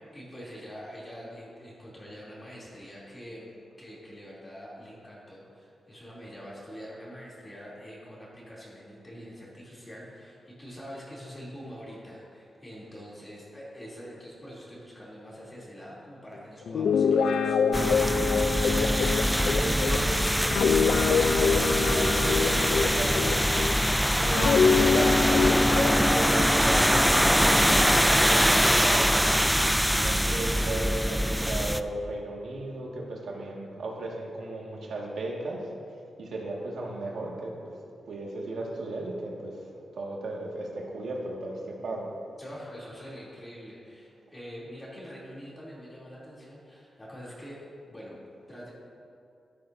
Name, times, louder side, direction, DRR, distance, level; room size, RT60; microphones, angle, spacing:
voice 1, 0.0-3.5 3.8-17.6 42.4-47.6 47.9-48.2 48.5-48.7, equal, 20° left, -8 dB, 3.1 m, -44 dB
Guitar, 16.7-23.9 24.3-28.0, left 5 dB, 80° left, 0.5 m, -25 dB
sound 1, 17.7-31.8, equal, ahead, 0.3 m, -23 dB
voice 2, 18.7-23.6 24.2-29.4 29.9-35.7 36.2-37.7 38.1-39.6 39.9-42.1, right 2 dB, 75° right, -2 dB, 2.0 m, -35 dB
14.5 x 12.0 x 2.7 m, 2.5 s
wide cardioid pair, 125°, 0 cm